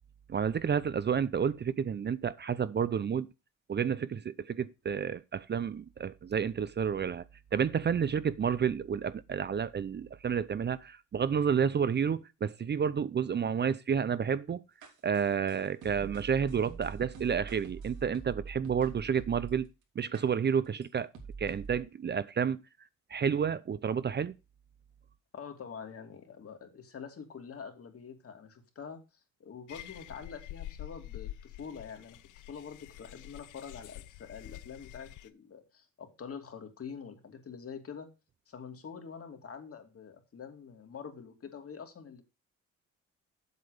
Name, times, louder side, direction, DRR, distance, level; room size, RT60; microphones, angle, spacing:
voice 1, 0.3-3.3 3.7-7.2 7.5-14.6 15.0-19.7 20.0-21.1 21.4-22.6 23.1-24.3, right 7 dB, 35° right, 0.6 m, -30 dB
sound 1, 14.8-19.7 20.1-20.2 20.8-20.9 21.1-21.8, right 5 dB, 80° right, 3.2 m, -44 dB
voice 2, 25.3-29.0 29.4-38.1 38.5-42.2, left 6 dB, 50° left, 2.7 m, -45 dB
sound 2, 29.7-35.3, left 14 dB, 85° left, 0.8 m, -47 dB
8.2 x 7.5 x 4.9 m
cardioid pair, 90°, 30 cm